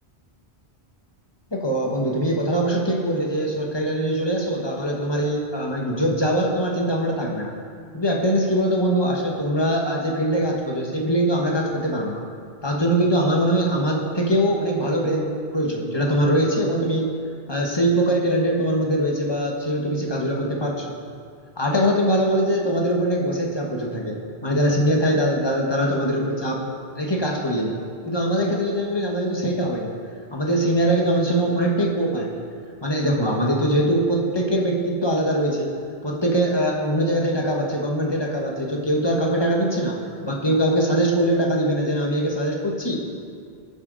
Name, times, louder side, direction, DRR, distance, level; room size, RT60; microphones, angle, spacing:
voice 1, 1.5-7.5 7.9-12.2 12.6-17.1 17.5-20.9 21.6-26.6 27.0-27.8 28.0-30.0 30.3-32.4 32.8-35.7 36.0-40.0 40.2-43.1, right 1 dB, 25° left, -1 dB, 1.5 m, -22 dB
18.0 x 7.1 x 4.1 m, 2.2 s
omnidirectional pair, 1.1 m